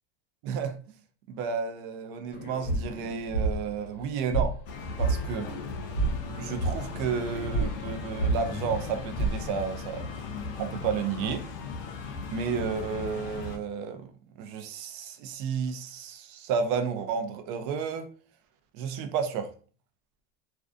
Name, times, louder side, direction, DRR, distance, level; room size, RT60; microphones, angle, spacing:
voice 1, 0.4-0.8 1.3-4.6 5.0-5.5 6.3-10.1 10.6-11.5 12.3-18.1 18.7-19.5, right 6 dB, 45° right, 0.4 m, -32 dB
sound 1, 2.3-4.6 4.9-9.5, right 3 dB, 30° left, 0.7 m, -30 dB
sound 2, 4.7-13.6, left 4 dB, 60° left, 0.5 m, -37 dB
2.5 x 2.2 x 2.4 m
supercardioid pair, 150°, 29 cm